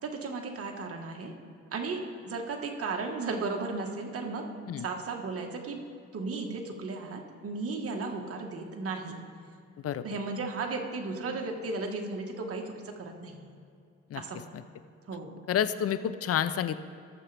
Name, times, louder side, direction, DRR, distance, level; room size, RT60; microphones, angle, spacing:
voice 1, 0.0-1.3 1.7-4.4 4.8-5.8 6.1-9.2 10.0-13.5 14.1-14.6 15.1-15.3, right 3 dB, 50° right, 2 dB, 1.5 m, -35 dB
voice 2, 15.5-16.8, left 9 dB, 50° left, 13 dB, 0.5 m, -29 dB
20.0 x 7.1 x 3.4 m, 2.4 s
cardioid pair, 90°, 30 cm